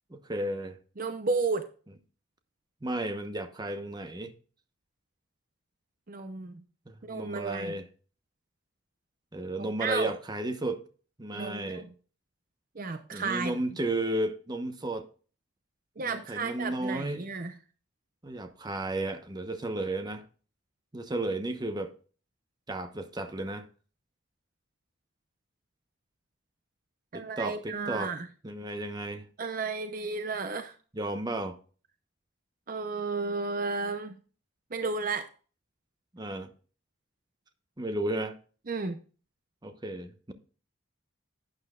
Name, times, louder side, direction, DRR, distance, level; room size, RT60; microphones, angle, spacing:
voice 1, 0.1-0.8 2.8-4.3 6.9-7.9 9.3-10.8 11.2-11.9 13.1-15.1 16.0-17.3 18.2-20.2 20.9-21.9 22.7-23.7 27.1-28.1 28.4-29.3 30.9-31.6 36.1-36.5 37.8-38.4 39.6-40.3, right 1 dB, 20° right, 0.9 m, -33 dB
voice 2, 1.0-1.7 6.1-6.6 7.0-7.7 9.6-10.1 11.3-11.9 12.8-13.5 16.0-17.5 27.1-28.3 29.4-30.7 32.7-34.1 34.7-35.3 38.7-39.0, right 4 dB, 45° right, 0.7 m, -33 dB
12.0 x 8.9 x 2.4 m
head